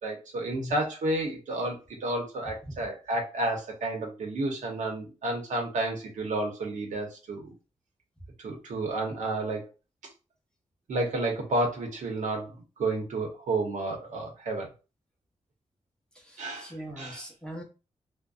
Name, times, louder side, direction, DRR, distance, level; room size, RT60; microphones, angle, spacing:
voice 1, 0.0-7.5 8.4-9.7 10.9-14.7 16.4-17.2, right 2 dB, 85° right, 1 dB, 0.8 m, -31 dB
voice 2, 16.6-17.6, equal, 5° left, -1 dB, 0.7 m, -39 dB
2.6 x 2.1 x 2.3 m, 0.31 s
wide cardioid pair, 115°, 12 cm